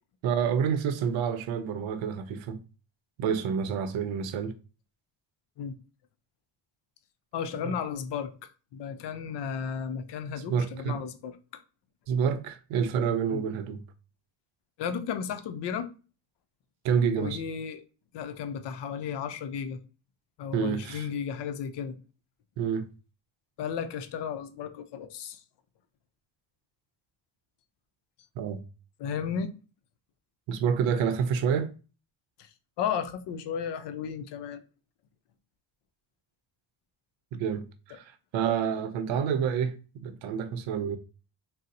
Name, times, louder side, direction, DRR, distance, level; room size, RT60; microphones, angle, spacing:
voice 1, 0.2-2.6 3.2-4.6 7.6-7.7 10.5-11.0 12.1-13.8 16.8-17.4 20.5-21.1 22.6-22.9 28.4-28.6 30.5-31.7 37.3-41.0, right 7 dB, 80° right, 0.6 m, -28 dB
voice 2, 7.3-8.3 8.7-11.6 13.3-13.5 14.8-15.9 17.2-17.8 18.1-19.8 20.4-22.0 23.6-25.4 29.0-29.5 32.4-32.5 32.8-34.6, left 7 dB, 65° left, 0.6 m, -34 dB
4.0 x 2.0 x 2.6 m
cardioid pair, 75°, 46 cm